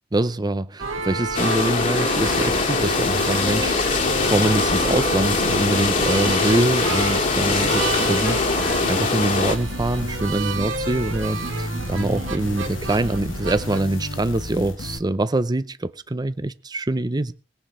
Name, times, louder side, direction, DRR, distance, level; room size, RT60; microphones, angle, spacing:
voice 1, 0.1-4.0 4.3-17.3, right 2 dB, 20° right, 0.6 m, -24 dB
sound 1, 0.8-13.8, right 3 dB, 80° right, 2.1 m, -30 dB
sound 2, 1.3-9.6, left 3 dB, 45° left, 2.1 m, -22 dB
sound 3, 2.2-15.0, left 2 dB, 70° left, 1.3 m, -34 dB
20.0 x 7.2 x 6.4 m
head